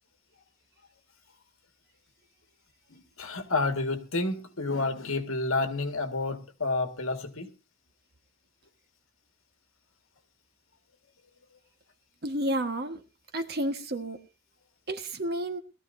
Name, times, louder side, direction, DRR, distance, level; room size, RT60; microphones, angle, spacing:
voice 1, 2.9-7.5, left 3 dB, 80° left, 1.9 m, -30 dB
voice 2, 12.2-13.0 13.3-14.2 14.9-15.6, right 1 dB, 50° right, 1.4 m, -31 dB
21.0 x 13.5 x 2.7 m
head